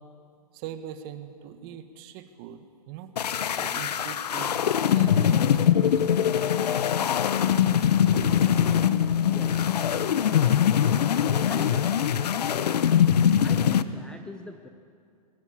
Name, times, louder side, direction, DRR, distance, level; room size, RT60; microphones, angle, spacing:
voice 1, 0.5-3.1 3.6-6.0, right 9 dB, 35° right, 9 dB, 1.4 m, -41 dB
sound 1, 3.2-13.8, left 9 dB, 90° left, 0.9 m, -22 dB
voice 2, 9.2-9.8 11.5-11.9 13.4-14.7, left 2 dB, 5° left, 6 dB, 0.5 m, -42 dB
21.0 x 15.5 x 8.7 m, 2.4 s
hypercardioid pair, 150°, 20 cm